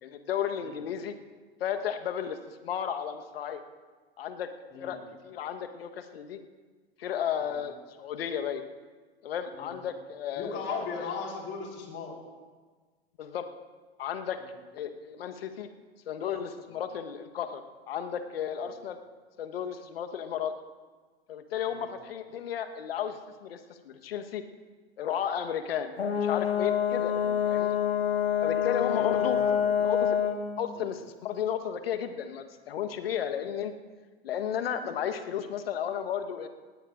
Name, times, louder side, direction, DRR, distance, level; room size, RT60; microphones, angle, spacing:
voice 1, 0.0-1.1 1.6-3.6 4.2-4.5 4.8-5.0 5.2-6.4 7.0-8.6 9.2-11.1 13.2-13.5 14.0-14.4 14.7-15.7 16.1-19.0 19.4-20.5 21.3-24.4 25.0-27.1 27.5-27.8 28.4-29.4 29.8-30.2 30.6-33.7 34.2-36.5, left 9 dB, 70° left, 8 dB, 1.3 m, -33 dB
voice 2, 10.4-12.2 14.4-14.6 16.7-16.8 21.7-21.9 27.1-27.3 28.5-29.7 30.7-30.9, left 4 dB, 40° left, -1 dB, 4.5 m, -38 dB
Brass instrument, 26.0-30.5, left 8 dB, 85° left, 1.0 m, -26 dB
19.0 x 17.5 x 2.5 m, 1.4 s
hypercardioid pair, 95°, 31 cm